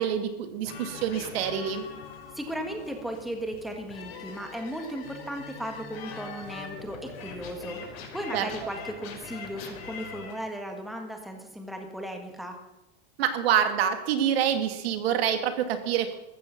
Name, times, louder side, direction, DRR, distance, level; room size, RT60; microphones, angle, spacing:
voice 1, 0.0-1.8 8.3-8.5 13.2-16.2, right 9 dB, 70° right, 8 dB, 2.3 m, -26 dB
sound 1, 0.6-10.3, left 5 dB, 70° left, 6.1 m, -43 dB
voice 2, 2.3-12.6, right 1 dB, ahead, 3 dB, 1.8 m, -36 dB
14.5 x 14.5 x 6.0 m, 0.93 s
supercardioid pair, 155°, 31 cm